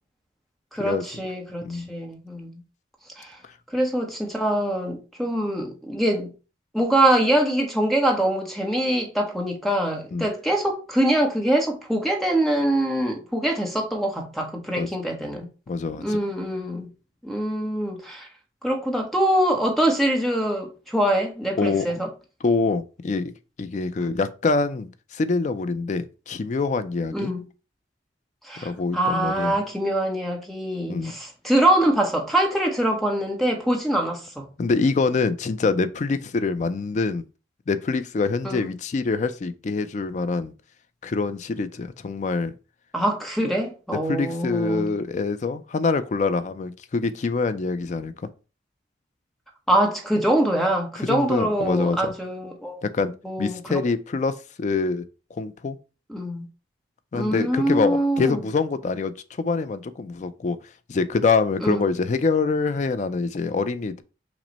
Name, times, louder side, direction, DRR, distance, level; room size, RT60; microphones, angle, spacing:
voice 1, 0.7-2.6 3.2-3.4 3.7-6.3 6.7-15.5 16.0-16.9 17.2-18.3 18.6-22.1 24.0-24.1 27.1-27.4 28.4-34.4 38.4-38.7 42.9-44.9 49.7-52.8 53.2-53.8 56.1-56.5 57.1-58.4 61.6-61.8, right 1 dB, ahead, 0.8 m, -24 dB
voice 2, 15.7-16.2 21.6-21.9 22.4-23.3 23.6-27.3 28.6-29.6 30.9-31.1 34.6-37.2 37.7-40.5 41.0-42.5 44.1-48.1 51.0-52.1 52.8-53.1 53.4-55.0 55.3-55.8 57.1-60.6 60.9-64.0, left 4 dB, 40° left, 0.3 m, -25 dB
5.9 x 2.1 x 3.9 m
head